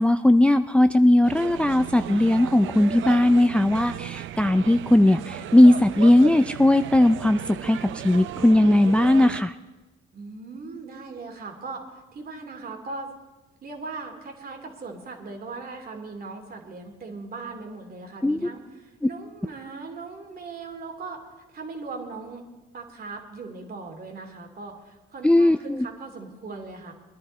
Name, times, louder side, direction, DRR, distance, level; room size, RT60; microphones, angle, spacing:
voice 1, 0.0-9.5 18.2-18.4 25.2-25.9, left 1 dB, 5° left, 10 dB, 0.4 m, -18 dB
sound 1, 1.2-9.4, right 12 dB, 75° right, 0.5 m, -36 dB
voice 2, 10.1-13.1 13.6-21.2 21.5-22.4 22.7-26.9, right 3 dB, 50° right, 3 dB, 2.6 m, -39 dB
20.5 x 10.5 x 4.3 m, 1.1 s
cardioid pair, 90°, 20 cm